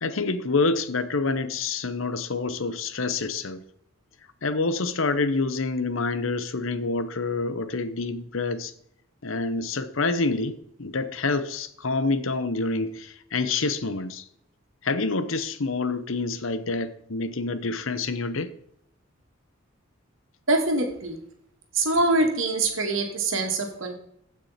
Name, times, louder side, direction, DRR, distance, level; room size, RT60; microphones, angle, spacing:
voice 1, 0.0-3.6 4.4-8.7 9.2-14.2 14.8-18.5, left 3 dB, 75° left, 0.9 m, -27 dB
voice 2, 20.5-21.2 21.7-23.9, right 2 dB, 75° right, 2.3 m, -24 dB
15.5 x 6.2 x 4.3 m
head